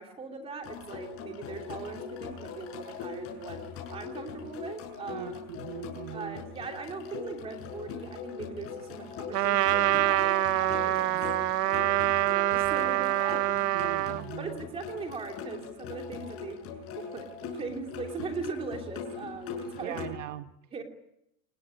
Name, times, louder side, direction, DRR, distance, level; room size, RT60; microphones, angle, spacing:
voice 1, 0.0-3.6 3.9-5.3 6.1-11.1 11.6-11.8 12.2-13.5 14.4-16.6 16.9-20.0 20.7-20.8, right 4 dB, 10° right, 4 dB, 3.0 m, -40 dB
sound 1, 0.6-20.1, left 6 dB, 30° left, 7.1 m, -41 dB
voice 2, 5.1-6.4 11.1-11.2 13.7-14.6 19.8-20.5, right 12 dB, 50° right, 10 dB, 1.2 m, -40 dB
Trumpet, 9.3-14.2, right 14 dB, 85° right, 1.6 m, -26 dB
28.5 x 20.5 x 10.0 m, 0.81 s
supercardioid pair, 180°, 46 cm